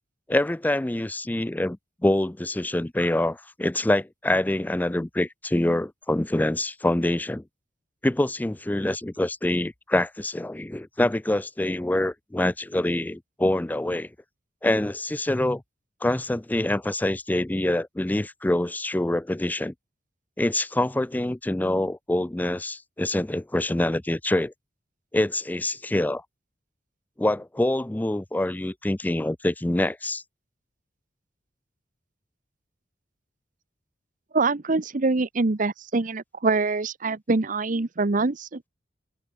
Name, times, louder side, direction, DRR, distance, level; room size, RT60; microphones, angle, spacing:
voice 1, 0.3-1.8 2.0-7.4 8.0-14.1 14.6-15.6 16.0-19.7 20.4-24.5 25.1-26.2 27.2-30.2, left 1 dB, 10° left, 0.4 m, -25 dB
voice 2, 34.3-38.7, right 3 dB, 45° right, 0.8 m, -24 dB
open air
head